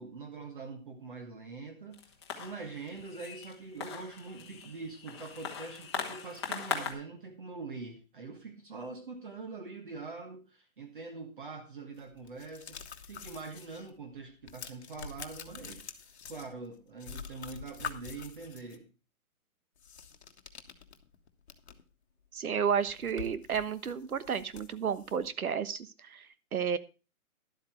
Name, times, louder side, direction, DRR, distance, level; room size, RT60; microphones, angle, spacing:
voice 1, 0.0-2.1 2.4-18.9, right 4 dB, 35° right, 5 dB, 1.3 m, -44 dB
sound 1, 1.9-6.9, left 6 dB, 20° left, 1.1 m, -40 dB
sound 2, 12.0-13.9 14.2-16.7 17.0-18.8 19.8-21.9 22.2-22.3 22.7-25.3, left 6 dB, 50° left, 1.3 m, -46 dB
voice 2, 22.3-26.8, right 7 dB, 85° right, 15 dB, 1.3 m, -32 dB
11.5 x 8.2 x 4.4 m, 0.32 s
hypercardioid pair, 180°, 42 cm